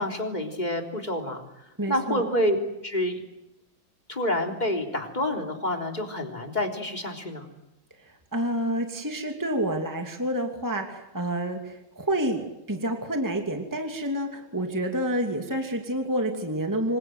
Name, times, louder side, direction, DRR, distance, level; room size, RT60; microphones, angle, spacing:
voice 1, 0.0-1.4 1.9-2.6 2.8-3.2 4.1-7.5, left 1 dB, 20° left, 3 dB, 3.7 m, -28 dB
voice 2, 1.8-2.2 8.0-17.0, right 1 dB, 10° right, 4 dB, 2.6 m, -29 dB
26.5 x 25.5 x 7.9 m, 0.90 s
omnidirectional pair, 2.2 m